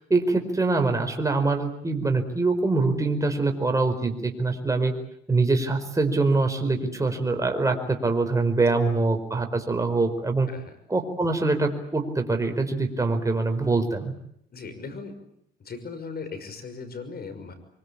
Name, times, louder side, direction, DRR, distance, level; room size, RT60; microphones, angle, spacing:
voice 1, 0.1-4.9 5.3-10.5 10.9-14.1, right 3 dB, 15° right, 4 dB, 4.8 m, -24 dB
voice 2, 14.5-15.2 15.6-17.5, left 4 dB, 50° left, 10 dB, 6.0 m, -38 dB
24.5 x 23.5 x 8.6 m, 0.73 s
cardioid pair, 90°, 20 cm